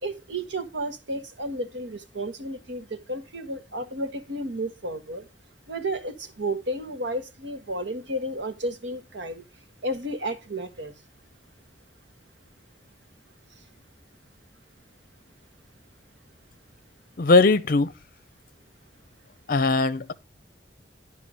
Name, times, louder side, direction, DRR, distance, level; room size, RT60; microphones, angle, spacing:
voice 1, 0.0-5.2 5.7-9.4 9.8-10.9, right 1 dB, 75° right, 1.4 m, -32 dB
voice 2, 17.2-17.9 19.5-20.1, left 3 dB, 50° left, 0.6 m, -19 dB
11.5 x 4.9 x 5.0 m
head